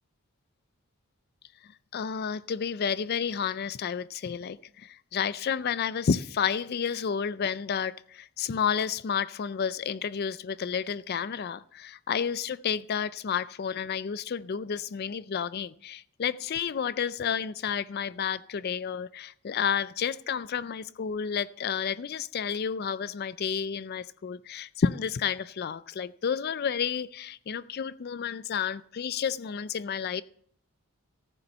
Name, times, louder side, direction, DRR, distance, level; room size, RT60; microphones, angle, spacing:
voice 1, 1.9-30.2, left 7 dB, 45° left, 0.4 m, -31 dB
14.5 x 6.9 x 5.5 m
head